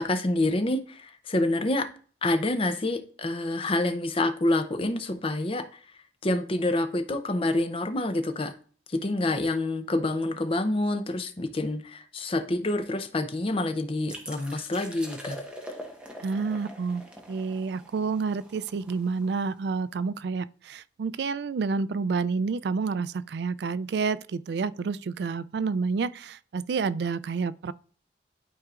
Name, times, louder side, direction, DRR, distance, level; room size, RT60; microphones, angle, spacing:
voice 1, 0.0-1.9 2.2-5.8 6.2-8.6 8.9-15.4, left 2 dB, 30° left, 0.6 m, -27 dB
sound 1, 14.1-19.6, equal, 5° right, 1.1 m, -43 dB
voice 2, 16.2-17.0 17.3-27.7, right 4 dB, 65° right, 0.3 m, -29 dB
11.5 x 4.6 x 2.4 m
head